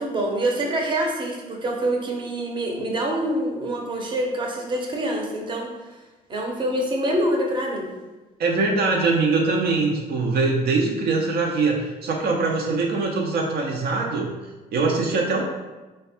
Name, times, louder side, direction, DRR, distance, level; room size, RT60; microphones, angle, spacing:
voice 1, 0.0-5.7 6.3-7.9, right 1 dB, 30° right, 0 dB, 0.7 m, -25 dB
voice 2, 8.4-14.3 14.7-15.4, right 3 dB, 65° right, 0 dB, 0.5 m, -22 dB
3.1 x 2.2 x 4.2 m, 1.2 s
cardioid pair, 110°, 17 cm